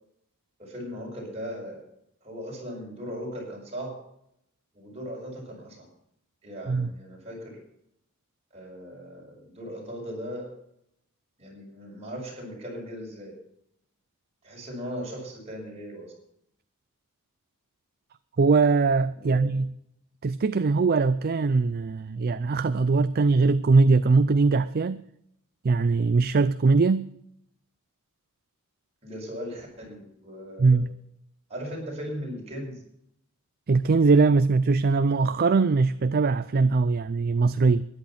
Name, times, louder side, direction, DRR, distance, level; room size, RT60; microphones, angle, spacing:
voice 1, 0.6-1.8 2.2-3.9 4.7-5.9 6.4-7.6 8.5-10.5 11.4-13.3 14.4-16.1 19.1-19.5 29.0-30.8 31.5-32.8, equal, 30° right, 6.2 m, -38 dB
voice 2, 18.4-19.7 20.2-25.0 25.6-27.1 30.6-30.9 33.7-37.9, right 4 dB, 45° right, 0.4 m, -21 dB
13.5 x 11.0 x 5.9 m
head